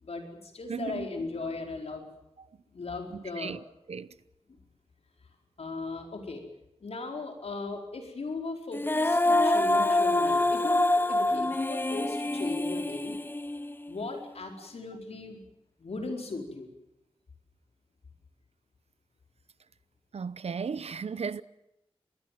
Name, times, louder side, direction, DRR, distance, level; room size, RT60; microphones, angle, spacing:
voice 1, 0.0-2.0 2.7-3.5 5.6-6.4 6.8-13.2 13.9-15.4 15.8-16.7, left 3 dB, 80° left, 4.7 m, -37 dB
voice 2, 0.7-1.1 3.1-3.6 3.9-4.1 20.1-21.4, right 6 dB, 90° right, 0.8 m, -35 dB
Female singing, 8.7-13.9, left 2 dB, 20° left, 0.9 m, -26 dB
25.5 x 20.5 x 7.6 m
wide cardioid pair, 85°, 10 cm